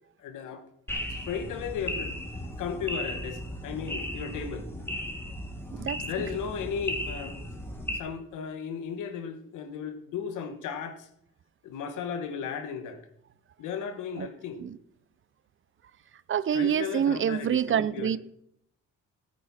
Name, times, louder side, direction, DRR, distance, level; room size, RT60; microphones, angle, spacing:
voice 1, 0.2-0.6 1.1-2.1 2.6-4.7 6.0-7.4 7.9-11.1 11.6-13.0 13.6-14.6 16.5-18.2, left 7 dB, 90° left, 1.5 m, -35 dB
sound 1, 0.9-8.0, left 1 dB, 10° left, 1.9 m, -36 dB
voice 2, 5.7-6.0 14.2-14.3 14.6-14.7 16.3-18.2, right 9 dB, 40° right, 0.5 m, -26 dB
15.5 x 9.1 x 4.2 m
cardioid pair, 90°, 30 cm